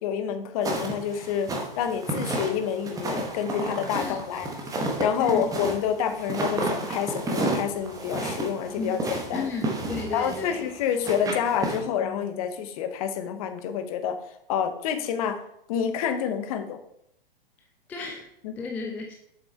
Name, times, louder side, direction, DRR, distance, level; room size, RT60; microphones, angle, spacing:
voice 1, 0.0-9.5 10.1-14.2 14.5-15.4 15.7-16.8 18.4-18.5, left 8 dB, 40° left, 0.9 m, -28 dB
sound 1, 0.6-11.8, right 2 dB, 10° right, 1.2 m, -31 dB
voice 2, 5.2-5.5 8.8-9.0 9.3-10.7 17.9-18.3 18.6-19.1, left 4 dB, 5° left, 0.4 m, -33 dB
7.5 x 5.9 x 3.4 m
figure-of-eight pair, 110°, 29 cm